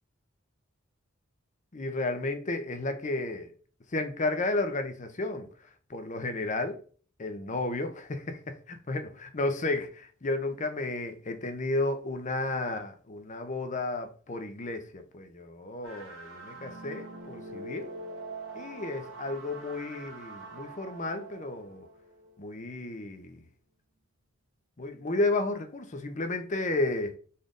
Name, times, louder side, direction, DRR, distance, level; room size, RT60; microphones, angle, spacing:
voice 1, 1.7-3.5 3.9-5.5 5.9-6.8 7.2-17.9 18.5-21.9 22.4-23.4 24.8-27.2, left 2 dB, 40° left, 0.7 m, -32 dB
sound 1, 15.8-22.7, right 2 dB, 85° right, 1.5 m, -44 dB
4.2 x 3.4 x 3.7 m
head